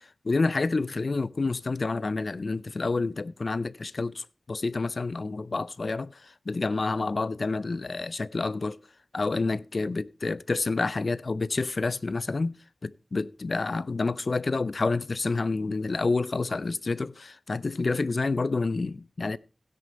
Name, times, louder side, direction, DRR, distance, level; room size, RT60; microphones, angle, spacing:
voice 1, 0.0-8.8 9.1-12.5 12.8-19.4, left 3 dB, 60° left, 0.5 m, -28 dB
16.0 x 6.4 x 4.2 m
wide cardioid pair, 55°, 0 cm